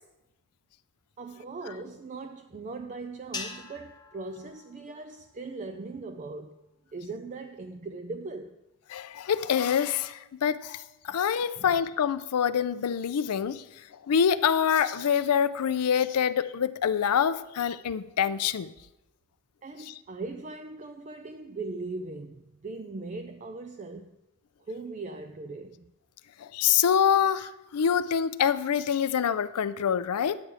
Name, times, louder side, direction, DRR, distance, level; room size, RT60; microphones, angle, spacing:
voice 1, 1.2-6.6 6.9-8.6 11.1-11.2 11.5-11.7 19.6-24.2 24.7-25.9, right 3 dB, 35° right, 0.4 m, -39 dB
sound 1, 3.3-5.8, left 4 dB, 20° left, 0.6 m, -43 dB
voice 2, 8.9-13.6 14.0-18.7 19.8-19.9 26.4-30.4, left 8 dB, 85° left, 0.4 m, -26 dB
11.0 x 8.7 x 3.5 m
head